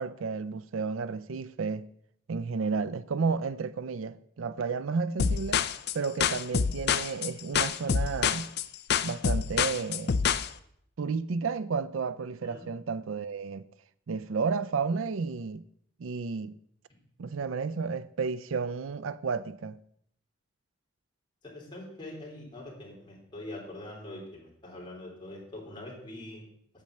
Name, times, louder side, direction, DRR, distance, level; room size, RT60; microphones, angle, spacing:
voice 1, 0.0-1.9 2.3-5.6 5.9-8.5 9.0-10.2 11.0-13.6 14.1-15.6 16.0-16.6 17.2-19.8, right 5 dB, 80° right, 0.5 m, -32 dB
sound 1, 5.2-10.5, left 6 dB, 55° left, 0.5 m, -27 dB
voice 2, 21.4-26.4, left 1 dB, 25° left, 3.6 m, -43 dB
8.7 x 7.6 x 6.6 m
head